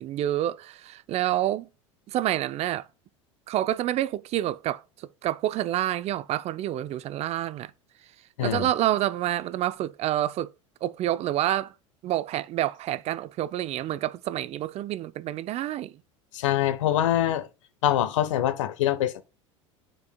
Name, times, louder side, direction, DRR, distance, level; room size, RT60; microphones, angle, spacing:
voice 1, 0.0-1.7 2.1-2.9 3.5-7.7 8.4-10.5 10.8-11.7 12.0-15.9, right 13 dB, 40° right, 0.4 m, -28 dB
voice 2, 16.3-17.5 17.8-19.2, left 12 dB, 75° left, 0.9 m, -24 dB
10.5 x 4.7 x 2.3 m
hypercardioid pair, 80°, 16 cm